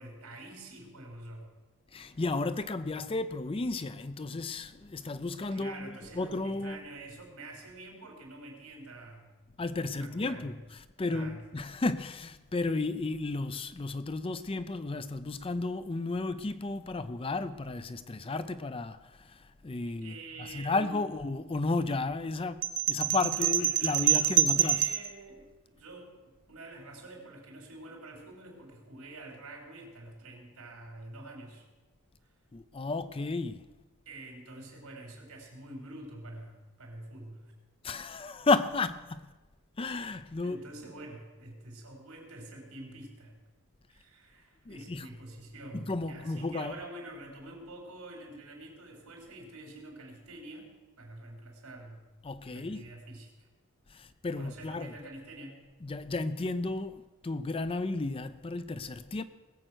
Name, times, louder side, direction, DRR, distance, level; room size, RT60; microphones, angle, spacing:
voice 1, 0.0-1.5 5.5-9.3 10.0-10.5 11.1-11.4 19.8-21.0 23.3-31.7 34.1-37.5 40.4-43.4 43.9-52.1 52.4-53.5 53.9-54.0 54.4-55.6, right 2 dB, 80° right, 4.1 m, -47 dB
voice 2, 1.9-6.8 9.6-24.9 32.5-33.6 37.8-39.3 39.8-40.6 44.7-45.1 45.7-46.8 52.2-52.9 53.9-54.9 55.8-59.2, left 3 dB, 25° left, 0.5 m, -33 dB
sound 1, 22.6-25.1, right 10 dB, 40° right, 0.6 m, -26 dB
20.0 x 7.8 x 6.2 m
head